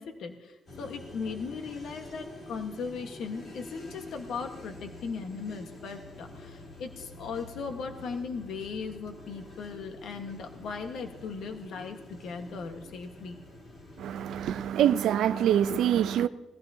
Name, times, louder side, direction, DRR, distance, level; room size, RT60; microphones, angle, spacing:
voice 1, 0.0-13.4, left 5 dB, 65° left, 1.4 m, -38 dB
sound 1, 0.7-14.7, left 2 dB, 40° left, 3.0 m, -47 dB
voice 2, 14.0-16.3, right 10 dB, 70° right, 0.6 m, -25 dB
20.5 x 15.0 x 2.8 m
cardioid pair, 140°, 0 cm